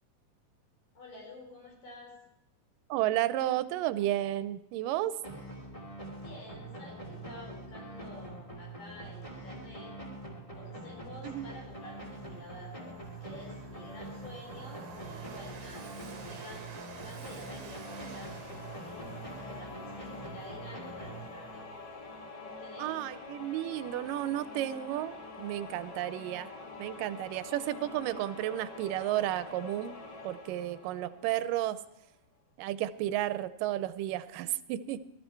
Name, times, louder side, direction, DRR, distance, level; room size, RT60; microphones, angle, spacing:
voice 1, 0.9-2.1 6.2-10.0 10.5-18.4 18.8-21.8 22.4-22.9, left 2 dB, 85° left, 0 dB, 6.1 m, -50 dB
voice 2, 2.9-5.1 11.2-11.5 22.8-26.5 26.8-30.0 30.2-31.8 32.6-35.0, right 13 dB, 90° right, 14 dB, 2.3 m, -32 dB
sound 1, 5.2-21.8, right 2 dB, 10° left, 1.9 m, -44 dB
Train, 11.2-11.3 11.7-22.1, right 6 dB, 65° right, 3.1 m, -50 dB
sound 2, 17.3-31.9, left 3 dB, 40° left, 2.0 m, -46 dB
18.5 x 13.0 x 4.5 m, 0.88 s
omnidirectional pair, 3.7 m